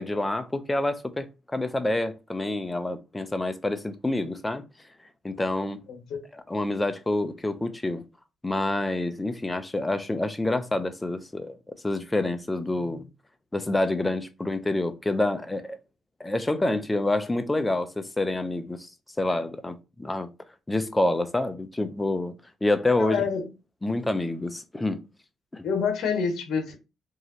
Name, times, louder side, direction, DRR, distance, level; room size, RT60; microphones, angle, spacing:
voice 1, 0.0-4.6 5.2-5.8 6.3-8.0 8.4-13.1 13.5-15.8 16.2-18.9 19.2-20.3 20.7-22.3 22.6-23.3 23.8-25.1 25.5-25.6, left 2 dB, 15° left, 0.7 m, -27 dB
voice 2, 5.9-6.2 23.0-23.4 25.6-26.8, left 6 dB, 65° left, 1.5 m, -27 dB
4.7 x 2.7 x 3.2 m
cardioid pair, 90°, 0 cm